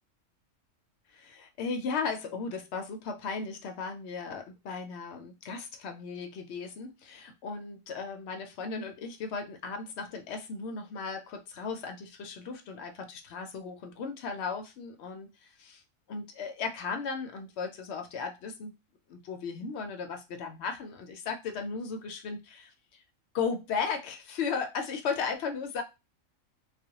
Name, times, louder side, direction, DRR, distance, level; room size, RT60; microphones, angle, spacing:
voice 1, 1.1-15.8 16.1-18.7 19.1-23.0 23.3-25.8, left 5 dB, 65° left, 5 dB, 0.7 m, -36 dB
2.4 x 2.2 x 2.8 m, 0.26 s
omnidirectional pair, 1.4 m